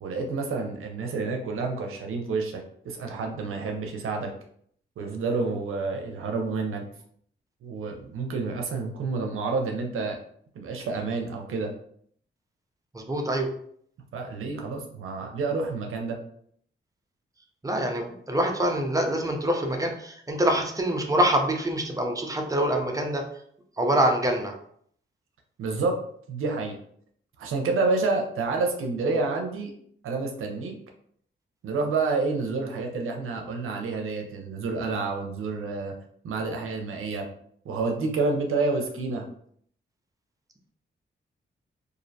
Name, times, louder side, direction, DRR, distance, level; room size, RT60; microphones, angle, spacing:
voice 1, 0.0-4.3 5.0-6.8 7.6-10.2 10.6-11.7 14.1-16.2 25.6-26.0 26.3-26.8 27.4-29.7 30.0-30.7 31.6-35.9 36.2-37.3 37.6-39.3, right 3 dB, 85° right, 2 dB, 0.5 m, -29 dB
voice 2, 12.9-13.5 17.6-23.2 23.8-24.5, right 1 dB, 15° right, 3 dB, 0.5 m, -25 dB
2.5 x 2.0 x 2.6 m, 0.64 s
cardioid pair, 60°, 21 cm